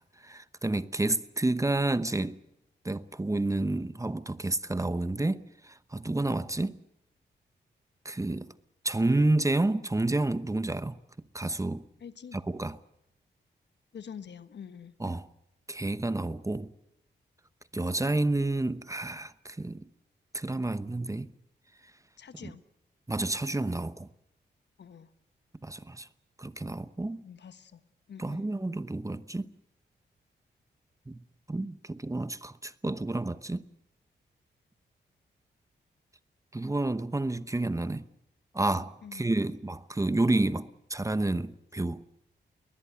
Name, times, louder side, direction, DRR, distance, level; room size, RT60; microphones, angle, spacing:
voice 1, 0.2-2.4 2.8-6.8 8.0-8.5 8.8-11.0 11.3-11.9 12.3-12.8 15.0-15.3 15.7-16.7 17.7-19.8 20.3-21.3 22.4-22.5 23.1-24.1 25.6-26.1 26.4-27.2 28.2-29.5 31.1-31.2 31.5-33.7 36.5-38.1 38.5-42.0, right 2 dB, 15° right, 0.9 m, -30 dB
voice 2, 12.0-12.4 13.9-14.9 22.2-22.6 24.8-25.1 27.2-27.8 28.1-28.5 39.0-39.6, left 7 dB, 65° left, 1.3 m, -46 dB
21.5 x 20.0 x 8.1 m
cardioid pair, 60°, 19 cm